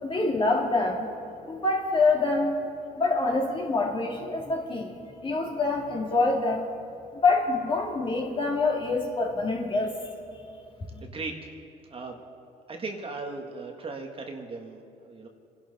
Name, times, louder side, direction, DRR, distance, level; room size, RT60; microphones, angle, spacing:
voice 1, 0.0-1.1 1.5-2.5 3.0-4.9 5.2-6.6 7.2-9.9, left 3 dB, 30° left, 0 dB, 2.4 m, -25 dB
voice 2, 11.0-11.5 11.9-12.2 12.7-15.3, right 3 dB, 35° right, 3 dB, 1.5 m, -37 dB
27.5 x 11.5 x 4.1 m, 2.6 s
cardioid pair, 110°, 17 cm